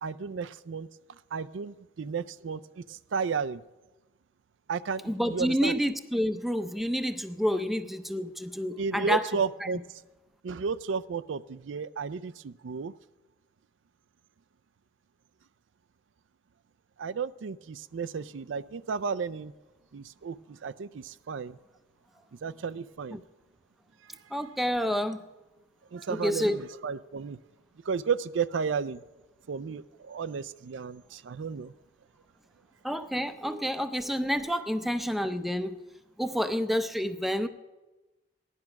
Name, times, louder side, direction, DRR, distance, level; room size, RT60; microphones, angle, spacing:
voice 1, 0.0-0.9 1.3-3.6 4.7-5.8 8.8-9.8 10.4-12.9 17.0-19.5 19.9-21.6 22.3-23.2 25.9-27.4 27.8-29.0 29.5-31.7, right 5 dB, 85° right, 15 dB, 0.4 m, -33 dB
voice 2, 5.0-9.2 23.1-23.2 24.3-25.2 26.1-26.6 32.8-35.7 36.2-37.5, equal, ahead, 9 dB, 0.5 m, -29 dB
16.0 x 11.0 x 5.8 m, 1.1 s
head